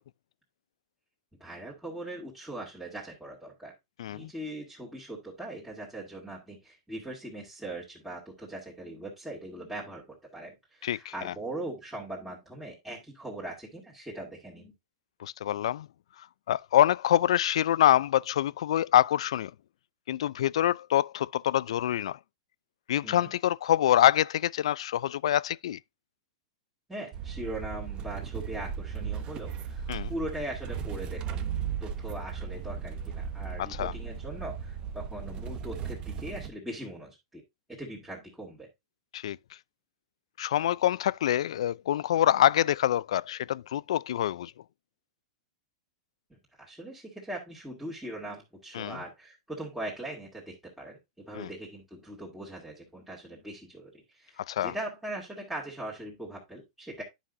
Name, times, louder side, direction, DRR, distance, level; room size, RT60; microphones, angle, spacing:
voice 1, 1.4-3.7 4.1-14.7 23.0-23.3 26.9-37.4 37.7-38.7 46.3-57.0, right 1 dB, ahead, 2.2 m, -40 dB
voice 2, 4.0-4.3 10.8-11.0 11.2-11.3 15.2-15.9 16.5-19.5 20.1-22.2 22.9-25.8 29.9-30.1 33.6-33.9 39.1-39.4 40.4-44.5 48.7-49.0 51.3-51.5 54.5-54.7, left 12 dB, 80° left, 0.3 m, -25 dB
sound 1, 27.1-36.5, right 7 dB, 30° right, 0.9 m, -36 dB
10.0 x 5.7 x 2.5 m
supercardioid pair, 145°, 3 cm